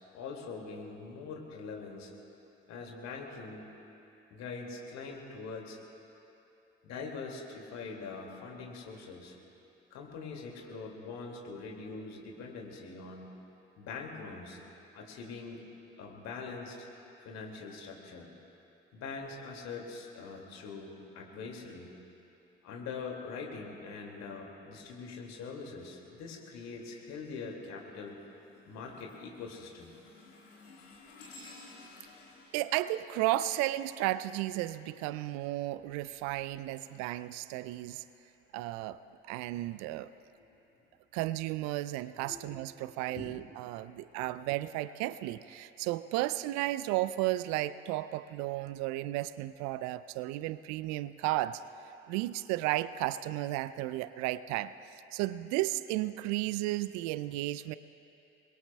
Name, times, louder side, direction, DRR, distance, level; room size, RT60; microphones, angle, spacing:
voice 1, 0.1-2.1 2.7-3.7 4.3-5.8 6.8-9.4 9.9-13.3 13.8-14.6 14.9-15.6 16.0-16.9 17.2-18.3 18.9-21.9 22.6-28.2 28.7-29.9 42.2-42.4 42.8-43.3 43.8-44.1, left 4 dB, 60° left, 1 dB, 2.3 m, -43 dB
sound 1, 26.6-27.0 27.5-34.3 35.6-37.8 38.4-38.6 39.5-39.6, left 3 dB, 80° left, 1.8 m, -56 dB
voice 2, 32.5-38.0 38.5-39.0 39.3-40.1 41.1-51.6 52.1-54.7 55.1-57.8, right 16 dB, 65° right, 15 dB, 0.5 m, -33 dB
29.5 x 21.5 x 2.3 m, 2.9 s
figure-of-eight pair, 45°, 30 cm